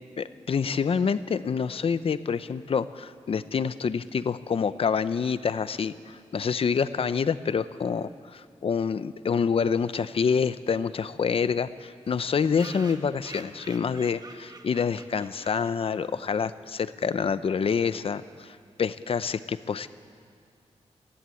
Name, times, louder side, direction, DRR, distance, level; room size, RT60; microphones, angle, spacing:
voice 1, 0.2-19.9, left 6 dB, 55° left, 14 dB, 0.6 m, -27 dB
sound 1, 10.3-10.4 10.7-10.8 11.0-11.1 11.3-11.4 12.0-16.3, right 3 dB, 35° right, 1.4 m, -48 dB
28.0 x 11.5 x 9.1 m, 2.4 s
wide cardioid pair, 150°, 12 cm